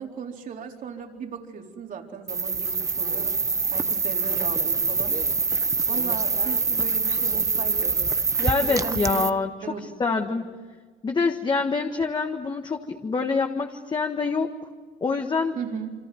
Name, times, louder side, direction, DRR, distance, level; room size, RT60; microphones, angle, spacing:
voice 1, 0.0-5.2 5.9-8.1 8.3-9.4 9.6-9.9 10.1-10.3 15.5-15.9, right 6 dB, 50° right, 2 dB, 4.2 m, -37 dB
sound 1, 2.3-9.3, right 4 dB, 20° right, 0.8 m, -25 dB
voice 2, 8.4-10.4 11.0-14.5 15.0-15.6, left 4 dB, 25° left, 4 dB, 1.6 m, -26 dB
29.0 x 25.5 x 7.9 m, 1.5 s
cardioid pair, 110°, 17 cm